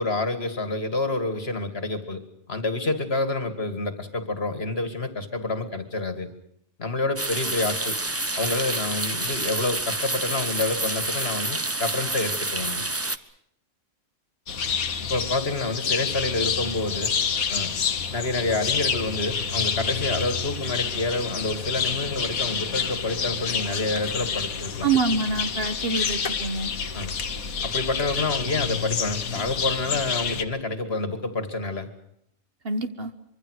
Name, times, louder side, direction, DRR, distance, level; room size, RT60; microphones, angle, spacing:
voice 1, 0.0-2.2 2.5-6.3 6.8-8.0 8.4-12.8 15.1-17.1 17.5-17.7 18.1-24.9 26.9-27.2 27.6-31.9, left 2 dB, 45° left, 9 dB, 2.3 m, -28 dB
sound 1, 7.2-13.2, right 2 dB, 15° right, 0.6 m, -28 dB
sound 2, 14.5-30.4, left 6 dB, 90° left, 1.8 m, -28 dB
voice 2, 24.8-26.7 32.6-33.1, right 4 dB, 45° right, 9 dB, 1.4 m, -26 dB
25.0 x 24.0 x 6.4 m, 0.72 s
omnidirectional pair, 1.4 m